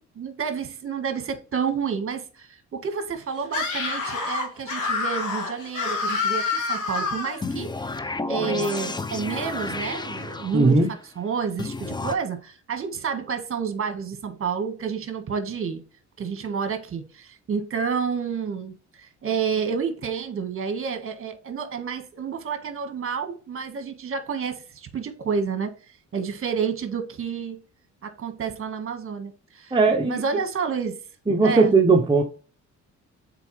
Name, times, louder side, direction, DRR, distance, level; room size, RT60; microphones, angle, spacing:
voice 1, 0.1-7.7 8.3-10.9 11.2-15.8 16.2-25.7 26.1-27.6 28.0-29.7 30.1-31.0 31.4-31.7, right 6 dB, 45° right, 1.6 m, -29 dB
Screaming, 3.5-7.4, left 4 dB, 90° left, 2.6 m, -27 dB
sound 1, 7.4-10.9 11.6-12.1, left 3 dB, 15° left, 0.5 m, -31 dB
voice 2, 10.5-10.9 29.7-30.2 31.3-32.2, right 3 dB, 15° right, 0.8 m, -18 dB
6.8 x 4.4 x 3.2 m
cardioid pair, 90°, 30 cm